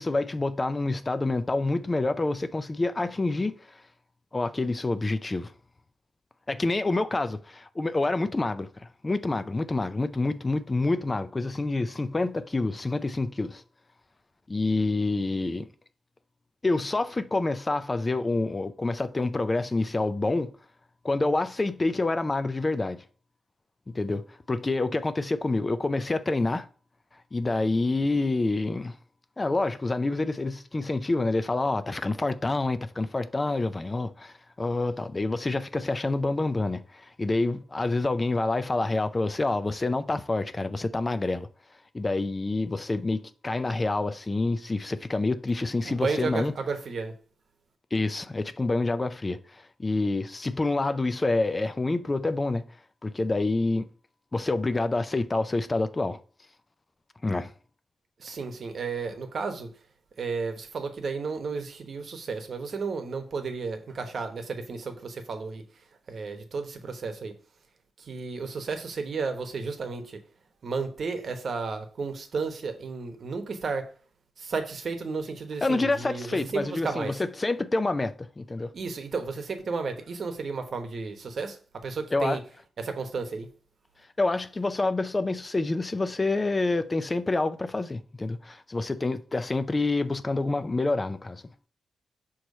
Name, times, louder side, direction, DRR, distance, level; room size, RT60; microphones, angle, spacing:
voice 1, 0.0-3.8 4.3-5.5 6.5-13.6 14.5-15.7 16.6-20.5 21.0-23.0 23.9-26.7 27.3-29.0 29.4-41.5 41.9-46.5 47.9-52.6 53.0-53.9 54.3-56.2 57.2-57.5 75.6-78.7 82.1-82.4 84.2-91.4, left 2 dB, 20° left, 0.4 m, -27 dB
voice 2, 45.8-47.1 58.2-59.7 60.2-65.6 66.1-67.3 68.0-70.2 70.6-73.9 74.4-77.1 78.7-82.4 82.8-83.5, right 4 dB, 50° right, 1.1 m, -33 dB
6.4 x 3.0 x 5.3 m
wide cardioid pair, 160°, 0 cm